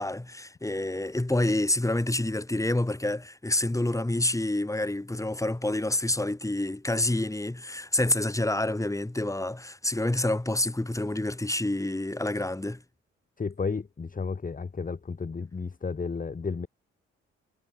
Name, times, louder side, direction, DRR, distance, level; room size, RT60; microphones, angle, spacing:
voice 1, 0.0-12.8, left 1 dB, 10° left, 2.0 m, -28 dB
voice 2, 13.4-16.7, left 5 dB, 25° left, 1.1 m, -32 dB
hypercardioid pair, 45°, 30 cm